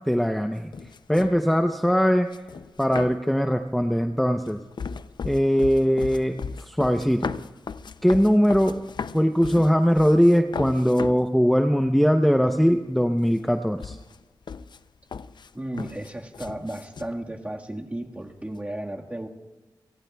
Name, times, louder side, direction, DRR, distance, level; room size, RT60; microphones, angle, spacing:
voice 1, 0.1-0.7 1.1-2.3 2.8-4.6 5.2-7.3 8.0-8.8 9.1-14.0, equal, ahead, 5 dB, 0.7 m, -21 dB
sound 1, 0.5-1.5 2.3-3.4 4.1-11.3 11.9-12.0 12.2-13.0 13.2-17.2, left 5 dB, 75° left, 0.4 m, -37 dB
voice 2, 15.5-19.3, right 1 dB, 20° right, 1 dB, 1.6 m, -34 dB
30.0 x 18.0 x 2.3 m, 1.2 s
wide cardioid pair, 90°, 8 cm